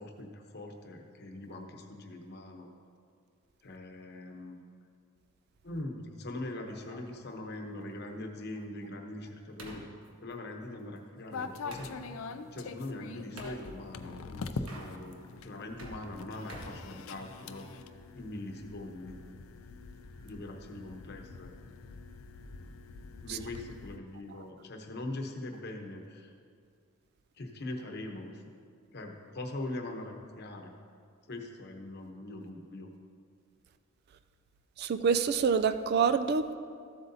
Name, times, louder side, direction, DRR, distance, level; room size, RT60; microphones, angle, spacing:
voice 1, 0.0-2.7 3.6-4.6 5.6-9.8 10.2-12.2 12.5-17.7 18.1-19.1 20.2-21.5 23.2-26.3 27.4-28.5 28.9-30.7 31.3-32.9, left 2 dB, 50° left, 3 dB, 0.9 m, -42 dB
sound 1, 6.7-12.0 13.4-13.6 14.5-15.3 15.6-17.6, right 1 dB, 75° right, 1.3 m, -50 dB
sound 2, 11.3-24.0, left 4 dB, 70° left, 0.4 m, -44 dB
voice 2, 34.8-36.6, right 6 dB, 50° right, 11 dB, 0.3 m, -26 dB
14.0 x 7.8 x 2.7 m, 2.2 s
head